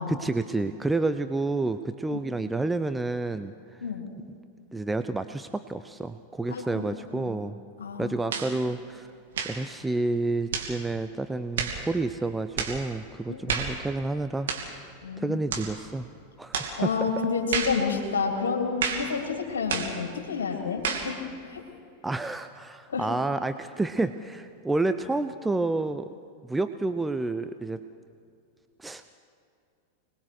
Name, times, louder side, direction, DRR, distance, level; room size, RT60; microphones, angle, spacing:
voice 1, 0.1-3.8 4.7-7.6 8.0-9.1 9.4-14.5 15.2-16.1 16.4-16.9 22.0-26.1 26.4-27.8 28.8-29.0, right 2 dB, 10° right, 10 dB, 0.7 m, -29 dB
voice 2, 6.5-6.8 7.1-7.4 7.8-8.1 13.3-13.4 15.0-15.4 16.8-21.1 21.5-21.6 22.9-23.1, left 5 dB, 65° left, 1 dB, 3.5 m, -29 dB
sound 1, 8.3-8.5 9.3-9.6 10.5-10.7 11.6-11.8 12.6-12.8 13.5-13.8 14.5-14.7 15.5-15.7 16.5-16.8 17.5-17.8 18.8-19.1 19.7-20.0 20.8-21.1, right 6 dB, 60° right, 3.0 m, -30 dB
26.0 x 20.5 x 6.5 m, 2.4 s
figure-of-eight pair, 90°, 0 cm